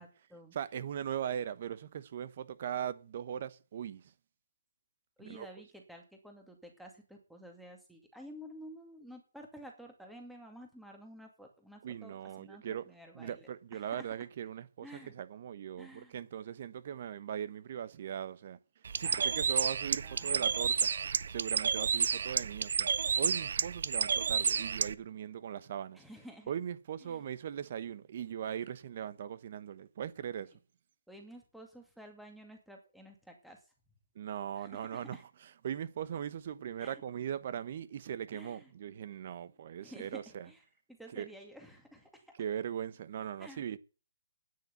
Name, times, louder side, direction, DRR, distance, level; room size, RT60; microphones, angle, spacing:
voice 1, 0.0-0.5 5.2-14.1 14.8-15.1 15.8-16.1 19.0-19.4 20.0-20.7 25.9-26.5 27.0-27.2 31.1-33.7 34.6-35.2 36.8-37.0 38.3-38.7 39.8-40.6 40.9-42.3 43.4-43.6, equal, ahead, 2.2 m, -52 dB
voice 2, 0.5-4.1 5.2-5.5 11.8-12.8 13.1-18.6 18.9-20.9 21.3-26.0 26.5-30.5 34.1-40.5 41.1-41.3 42.4-43.8, right 9 dB, 45° right, 1.0 m, -39 dB
Bird, 18.9-24.9, right 6 dB, 60° right, 0.7 m, -31 dB
9.6 x 8.3 x 8.2 m
hypercardioid pair, 160°, 0 cm